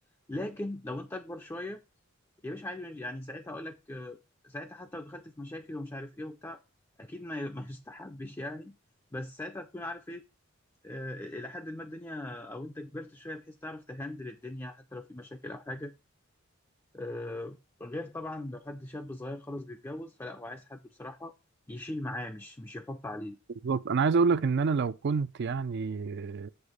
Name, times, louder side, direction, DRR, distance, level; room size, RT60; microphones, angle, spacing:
voice 1, 0.3-1.8 2.4-4.2 4.4-6.6 7.0-8.7 9.1-10.2 10.8-15.9 16.9-21.3 21.7-23.4, left 1 dB, 15° left, 0.5 m, -39 dB
voice 2, 23.6-26.5, right 5 dB, 55° right, 0.4 m, -27 dB
8.1 x 2.9 x 5.1 m
head